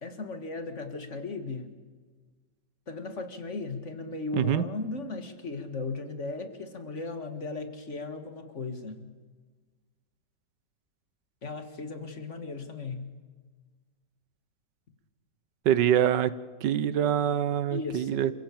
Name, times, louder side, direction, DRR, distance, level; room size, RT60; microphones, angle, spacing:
voice 1, 0.0-1.7 2.9-9.1 11.4-13.1 17.7-18.2, left 3 dB, 45° left, 8 dB, 2.1 m, -36 dB
voice 2, 4.3-4.6 15.6-16.3 16.6-18.3, right 10 dB, 80° right, 16 dB, 1.5 m, -24 dB
27.5 x 16.5 x 8.6 m, 1.4 s
omnidirectional pair, 1.9 m